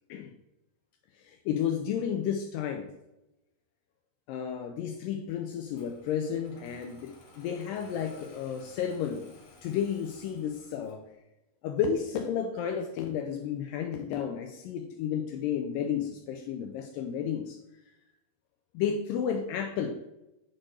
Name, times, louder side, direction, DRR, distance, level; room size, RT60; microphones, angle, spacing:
voice 1, 1.2-2.9 4.3-9.3 9.6-11.0 11.6-17.6 18.7-20.0, left 8 dB, 90° left, 4 dB, 1.9 m, -32 dB
Engine starting, 5.7-11.1, left 3 dB, 65° left, 2.2 m, -55 dB
7.6 x 4.3 x 3.2 m, 0.93 s
omnidirectional pair, 4.4 m